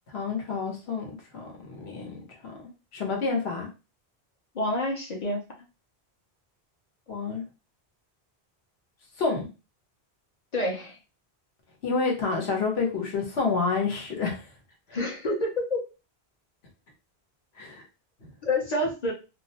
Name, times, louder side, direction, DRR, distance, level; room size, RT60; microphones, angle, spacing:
voice 1, 0.1-2.2 2.9-3.7 7.1-7.4 9.2-9.5 11.8-14.4 17.6-17.8 18.2-18.3, left 4 dB, 80° left, 0 dB, 1.1 m, -28 dB
voice 2, 4.5-5.4 10.5-11.0 14.9-15.8 18.4-19.1, left 1 dB, 45° left, -1 dB, 0.7 m, -28 dB
2.5 x 2.0 x 2.7 m, 0.30 s
omnidirectional pair, 1.1 m